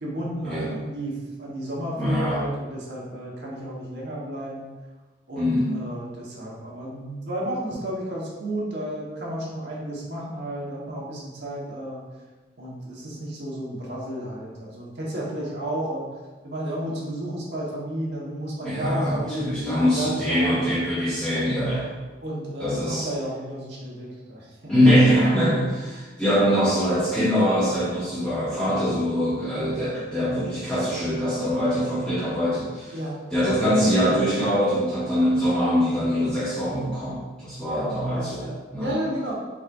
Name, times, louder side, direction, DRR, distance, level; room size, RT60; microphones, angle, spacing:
voice 1, 0.0-4.6 5.3-12.0 12.6-16.0 16.4-20.8 21.5-21.9 22.2-24.7 26.2-26.3 32.9-33.3 37.6-39.3, right 1 dB, 70° right, -5 dB, 1.2 m, -32 dB
voice 2, 2.0-2.4 5.4-5.7 18.6-19.1 19.4-21.9 22.6-23.1 24.7-33.0 33.3-38.4 38.7-38.9, equal, 5° left, -13 dB, 0.9 m, -23 dB
4.7 x 4.0 x 2.5 m, 1.3 s
head